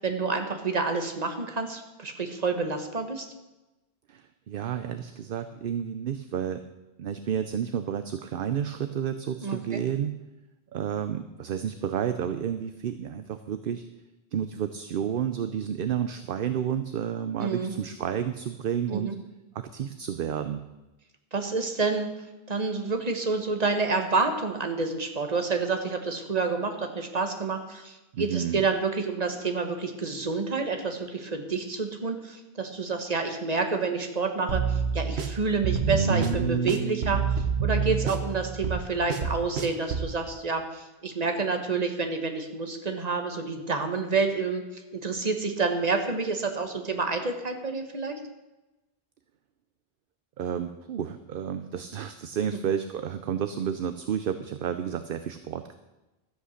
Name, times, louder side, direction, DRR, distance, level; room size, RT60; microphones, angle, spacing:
voice 1, 0.0-3.3 9.4-9.8 17.4-17.7 18.9-19.2 21.3-22.2 22.5-37.3 37.6-48.2, right 4 dB, 40° right, 5 dB, 1.4 m, -28 dB
voice 2, 4.1-6.6 7.0-10.1 10.7-13.8 14.3-19.2 19.5-20.6 28.1-28.6 50.4-55.7, right 8 dB, 65° right, 10 dB, 0.8 m, -31 dB
sound 1, 34.5-40.1, right 6 dB, 90° right, 1.3 m, -27 dB
12.5 x 8.3 x 6.4 m, 1.0 s
omnidirectional pair, 1.1 m